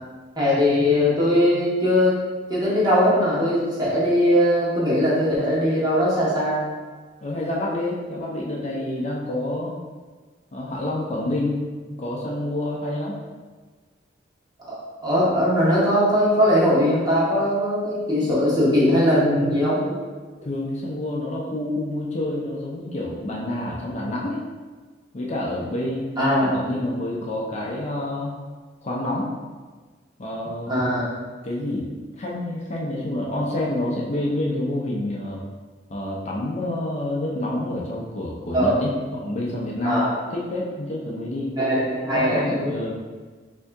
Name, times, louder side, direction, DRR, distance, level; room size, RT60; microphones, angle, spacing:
voice 1, 0.4-2.2 2.5-6.7 14.6-14.8 15.0-19.8 26.2-26.5 30.7-31.0 38.5-38.8 39.8-40.2 41.6-42.7, equal, 25° right, -7 dB, 1.1 m, -20 dB
voice 2, 7.2-9.8 10.5-11.6 12.0-13.2 20.4-24.4 25.1-26.1 26.4-28.4 28.8-29.3 30.2-30.7 31.4-35.4 35.9-41.5 42.1-42.9, left 1 dB, 40° left, -3 dB, 0.5 m, -28 dB
3.6 x 2.7 x 3.4 m, 1.4 s
head